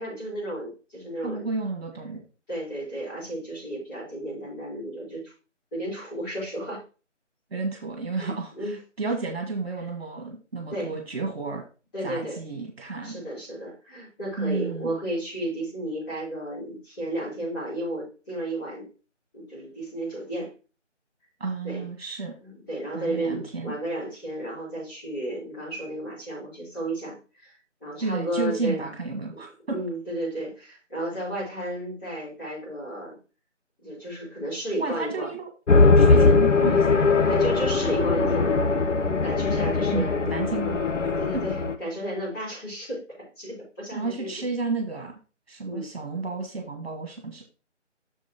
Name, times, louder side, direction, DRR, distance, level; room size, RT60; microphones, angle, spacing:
voice 1, 0.0-1.5 2.5-5.3 5.7-6.8 8.1-8.8 10.7-10.9 11.9-12.4 13.0-18.9 19.3-20.5 21.6-21.9 22.4-28.9 29.7-33.2 33.8-35.3 36.1-36.3 37.3-38.6 39.0-40.5 41.2-43.0 43.4-44.3 45.7-45.9, right 1 dB, 20° left, -9 dB, 4.1 m, -33 dB
voice 2, 1.2-2.2 7.5-11.6 12.0-13.2 14.4-15.0 21.4-22.3 22.9-23.7 28.0-29.8 34.8-35.5 36.0-37.4 39.9-41.4 43.9-45.1 45.5-47.4, right 3 dB, 55° right, 3 dB, 1.8 m, -32 dB
sound 1, 35.7-41.7, left 4 dB, 75° left, 0.9 m, -20 dB
7.2 x 6.6 x 3.0 m, 0.33 s
figure-of-eight pair, 160°, 37 cm